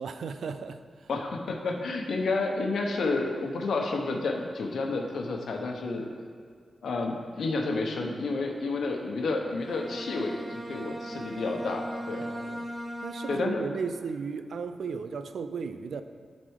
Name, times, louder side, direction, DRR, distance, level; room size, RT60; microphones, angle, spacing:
voice 1, 0.0-1.1 12.2-12.7 13.0-16.0, right 5 dB, 85° right, 10 dB, 0.4 m, -35 dB
voice 2, 1.1-6.1 6.8-12.3 13.3-13.6, left 3 dB, 90° left, 2 dB, 1.0 m, -30 dB
Bowed string instrument, 9.5-13.8, right 1 dB, 30° right, 1.5 m, -38 dB
12.5 x 4.2 x 4.8 m, 2.1 s
wide cardioid pair, 150°, 0 cm